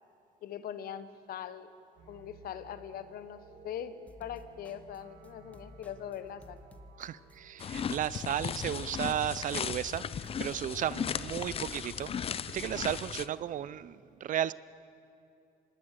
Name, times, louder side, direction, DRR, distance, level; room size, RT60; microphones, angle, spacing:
voice 1, 0.4-1.7 2.1-3.9 4.2-6.6, left 9 dB, 60° left, 12 dB, 1.2 m, -41 dB
sound 1, 2.0-13.8, right 5 dB, 80° right, 6.1 m, -57 dB
sound 2, 4.1-13.2, left 2 dB, 10° left, 1.2 m, -55 dB
voice 2, 7.0-12.1 12.5-14.5, right 11 dB, 50° right, 18 dB, 0.5 m, -34 dB
sound 3, 7.6-13.3, left 8 dB, 35° left, 0.5 m, -36 dB
25.0 x 20.0 x 6.7 m, 2.6 s
cardioid pair, 110°, 17 cm